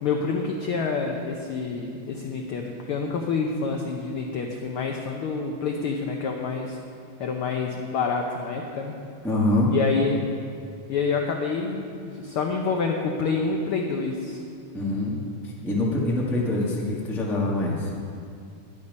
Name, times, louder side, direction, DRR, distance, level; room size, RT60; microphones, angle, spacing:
voice 1, 0.0-6.8 7.2-8.9 9.7-10.2 10.9-14.4, left 4 dB, 85° left, 2 dB, 1.2 m, -27 dB
voice 2, 9.2-9.7 14.7-15.2 15.4-17.9, left 2 dB, 5° left, -4 dB, 0.4 m, -25 dB
11.0 x 10.0 x 5.3 m, 2.4 s
omnidirectional pair, 3.4 m